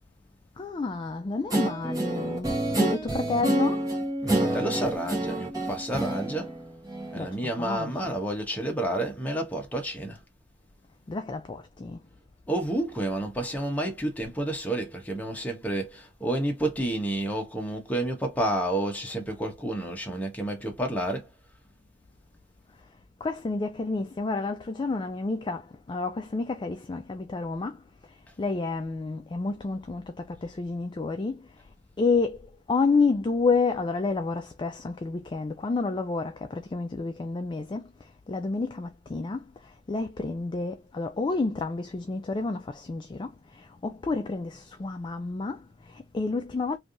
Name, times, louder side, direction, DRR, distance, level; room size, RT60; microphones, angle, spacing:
voice 1, 0.6-3.9 7.2-8.1 11.1-12.0 23.2-31.5 32.0-46.8, left 3 dB, 25° left, 0.3 m, -30 dB
Guitar, 1.5-7.3, right 1 dB, 20° right, 1.3 m, -28 dB
voice 2, 4.2-6.5 7.1-10.2 12.5-21.3, right 1 dB, 10° left, 1.0 m, -30 dB
3.3 x 2.7 x 2.5 m
head